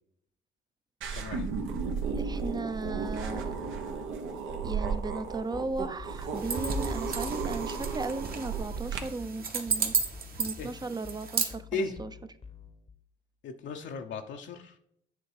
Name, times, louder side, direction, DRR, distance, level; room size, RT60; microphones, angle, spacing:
sound 1, 1.0-9.0, right 5 dB, 80° right, 1.2 m, -34 dB
voice 1, 1.1-1.5 10.6-10.7 11.7-12.0 13.4-14.8, left 4 dB, 70° left, 3 dB, 0.8 m, -36 dB
voice 2, 2.1-3.5 4.6-9.9 10.4-11.7 12.0-12.1, right 3 dB, 20° right, 12 dB, 0.6 m, -36 dB
sound 2, 5.5-12.9, left 6 dB, 30° left, 0.9 m, -49 dB
sound 3, 6.4-11.5, right 5 dB, 50° right, 1.3 m, -33 dB
8.4 x 3.6 x 4.8 m, 0.74 s
cardioid pair, 90°, 20 cm